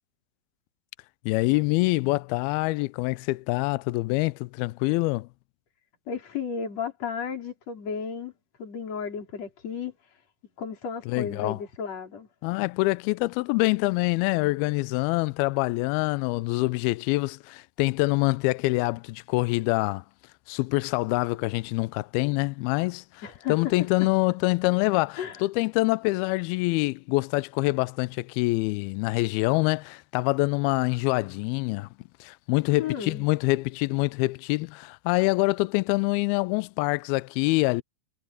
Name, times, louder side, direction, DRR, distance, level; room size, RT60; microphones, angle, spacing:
voice 1, 1.3-5.3 11.1-11.6 12.4-20.0 20.5-23.0 23.5-31.9 32.2-37.8, left 23 dB, 85° left, 2.2 m, -25 dB
voice 2, 6.1-8.3 8.6-9.9 10.6-12.3 23.2-23.6 25.2-25.4 32.8-33.3, left 6 dB, 40° left, 5.3 m, -33 dB
omnidirectional pair, 4.8 m